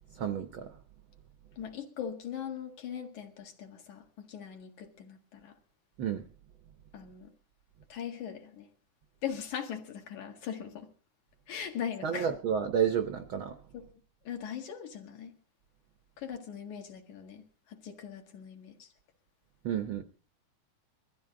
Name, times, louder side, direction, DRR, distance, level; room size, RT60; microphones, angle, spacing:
voice 1, 0.2-0.7 6.0-6.2 12.0-13.5 19.6-20.0, right 8 dB, 70° right, 1.2 m, -30 dB
voice 2, 1.6-5.6 6.9-7.3 7.9-8.7 9.2-10.9 11.5-12.3 13.7-13.8 14.2-15.3 16.2-18.9, left 8 dB, 75° left, 3.3 m, -40 dB
22.0 x 14.0 x 3.8 m
omnidirectional pair, 3.5 m